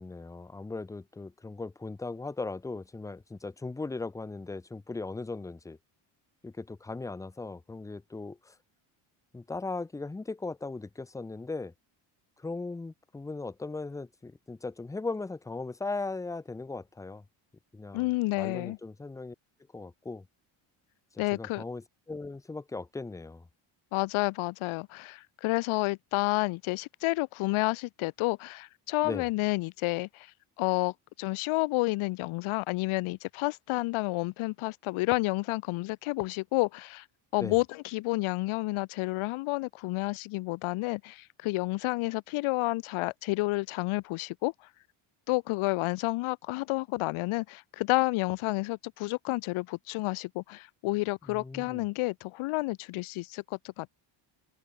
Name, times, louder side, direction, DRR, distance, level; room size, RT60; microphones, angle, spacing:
voice 1, 0.0-5.8 6.4-8.5 9.3-11.7 12.4-17.2 17.7-18.1 18.4-19.4 19.7-20.3 21.3-23.5 29.0-29.3 37.4-37.6 51.3-51.9, left 3 dB, 5° left, 0.4 m, -38 dB
voice 2, 17.9-18.8 21.2-21.6 23.9-30.3 30.6-37.0 37.3-44.5 45.3-53.9, left 21 dB, 75° left, 0.8 m, -30 dB
cardioid pair, 155°, 50 cm